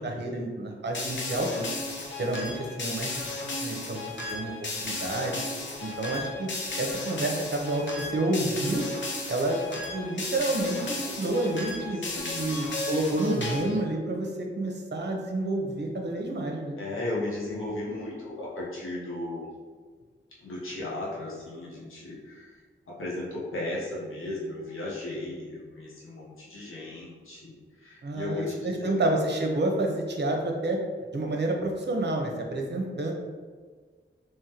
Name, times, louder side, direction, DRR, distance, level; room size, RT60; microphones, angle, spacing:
voice 1, 0.0-1.7 2.2-4.5 4.8-5.4 5.8-6.5 6.8-8.8 9.3-12.0 12.3-16.8 28.0-28.5 28.8-30.8 31.1-33.1, right 2 dB, 60° right, 1 dB, 0.7 m, -29 dB
sound 1, 0.9-13.8, left 2 dB, 65° left, 0.7 m, -35 dB
voice 2, 11.9-12.7 16.8-19.5 20.4-22.6 22.9-28.9, left 2 dB, 90° left, -6 dB, 0.9 m, -36 dB
3.6 x 3.0 x 2.9 m, 1.5 s
cardioid pair, 55°, 20 cm